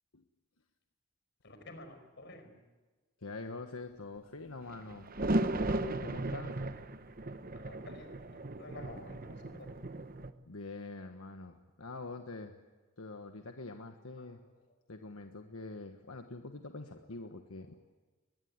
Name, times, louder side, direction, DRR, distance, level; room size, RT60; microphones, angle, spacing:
voice 1, 1.4-2.6 7.5-9.8 14.2-14.3, left 1 dB, 50° left, 7 dB, 5.0 m, -51 dB
voice 2, 3.2-5.1 5.5-6.6 10.5-12.5 13.0-14.4 14.9-17.7, left 3 dB, 75° left, 6 dB, 1.4 m, -45 dB
sound 1, 4.7-10.3, right 1 dB, 40° right, 1.0 m, -36 dB
23.0 x 20.5 x 9.6 m, 1.3 s
head